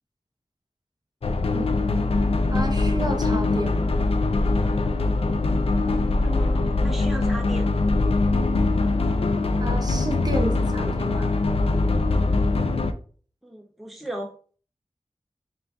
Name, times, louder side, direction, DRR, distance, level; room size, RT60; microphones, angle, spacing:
sound 1, 1.2-12.9, left 3 dB, 65° left, 0.4 m, -22 dB
voice 1, 2.5-3.9 9.6-11.4, right 1 dB, 40° right, 4 dB, 0.7 m, -31 dB
voice 2, 6.2-7.7 13.4-14.3, right 1 dB, ahead, 3 dB, 0.5 m, -35 dB
3.7 x 2.4 x 3.4 m, 0.43 s
wide cardioid pair, 60°, 11 cm